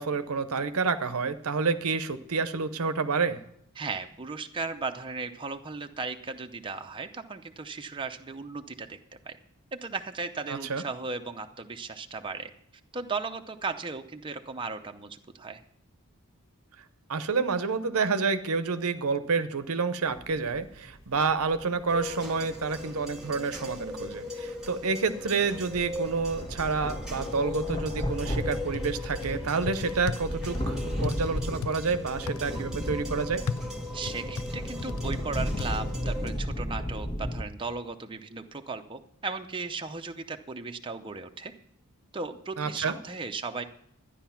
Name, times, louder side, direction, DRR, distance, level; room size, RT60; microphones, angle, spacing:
voice 1, 0.0-3.4 10.5-10.8 17.1-33.4 42.6-43.0, right 4 dB, 70° right, 11 dB, 0.8 m, -29 dB
voice 2, 3.8-9.0 9.3-9.4 9.7-12.5 12.9-15.6 33.9-41.5 42.1-43.6, right 4 dB, 20° right, 5 dB, 0.6 m, -36 dB
sound 1, 20.1-24.3 24.5-24.8 25.1-25.2 25.4-25.5 25.7-37.4, equal, 25° left, 1.4 m, -34 dB
sound 2, 21.9-36.3, left 2 dB, 5° right, 1.6 m, -39 dB
sound 3, 28.7-29.3 29.7-30.6 31.0-31.7 32.3-32.4 33.5-35.2 35.6-35.7, left 5 dB, 75° left, 0.6 m, -35 dB
12.5 x 10.0 x 5.8 m, 0.72 s
head